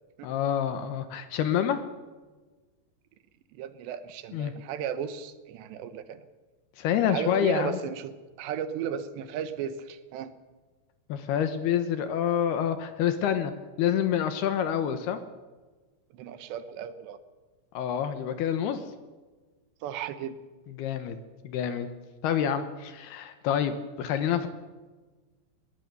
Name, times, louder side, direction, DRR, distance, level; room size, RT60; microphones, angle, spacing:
voice 1, 0.2-1.8 4.3-4.5 6.8-7.8 11.1-13.5 13.8-15.2 17.7-18.8 20.8-21.2 21.4-21.9 22.2-24.5, left 9 dB, 70° left, 10 dB, 2.9 m, -27 dB
voice 2, 3.5-6.3 7.1-10.3 16.1-17.2 19.8-20.4, right 8 dB, 75° right, 11 dB, 3.1 m, -35 dB
21.5 x 18.5 x 6.9 m, 1.3 s
omnidirectional pair, 5.2 m